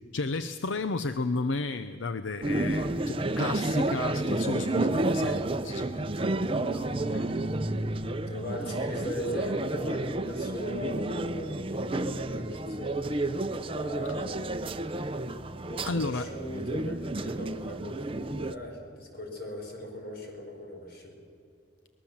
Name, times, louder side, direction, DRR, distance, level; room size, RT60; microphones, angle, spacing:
voice 1, 0.1-7.5 15.8-16.3, left 3 dB, 75° left, 11 dB, 0.7 m, -33 dB
sound 1, 2.4-18.5, right 2 dB, 25° right, 0.7 m, -31 dB
voice 2, 8.3-14.7 15.6-21.2, left 1 dB, 50° left, 2 dB, 4.6 m, -39 dB
23.5 x 20.5 x 7.3 m, 2.4 s
head